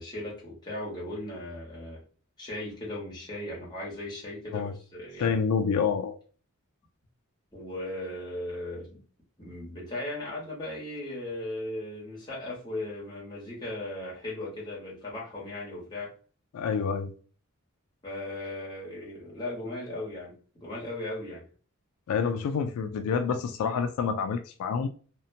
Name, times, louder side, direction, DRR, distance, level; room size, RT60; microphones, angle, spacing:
voice 1, 0.0-2.0 2.4-5.4 7.5-9.0 9.4-16.1 18.0-21.4, left 1 dB, 20° left, 1.0 m, -37 dB
voice 2, 5.2-6.2 16.5-17.1 22.1-24.9, left 6 dB, 75° left, 0.3 m, -28 dB
2.6 x 2.1 x 2.7 m
head